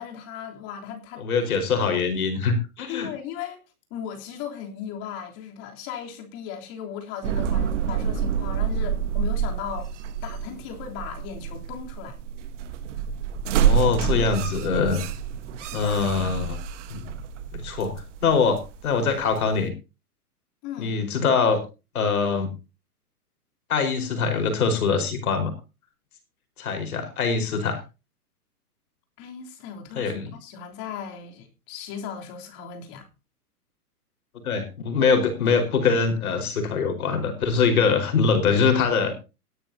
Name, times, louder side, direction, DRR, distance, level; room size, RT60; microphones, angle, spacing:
voice 1, 0.0-1.2 2.9-3.6 3.9-9.9 10.2-12.2 15.6-16.3 20.6-21.0 29.2-33.1, left 8 dB, 30° left, 2 dB, 3.4 m, -37 dB
voice 2, 1.2-3.1 13.6-15.0 15.7-16.6 16.9-17.1 17.5-17.9 18.2-19.7 20.8-21.6 21.9-22.5 23.7-25.5 26.6-27.8 29.9-30.3 34.4-39.1, left 5 dB, 65° left, 6 dB, 4.8 m, -23 dB
sound 1, 7.2-19.7, right 7 dB, 50° right, 1.4 m, -27 dB
18.0 x 12.5 x 2.8 m, 0.30 s
hypercardioid pair, 135°, 46 cm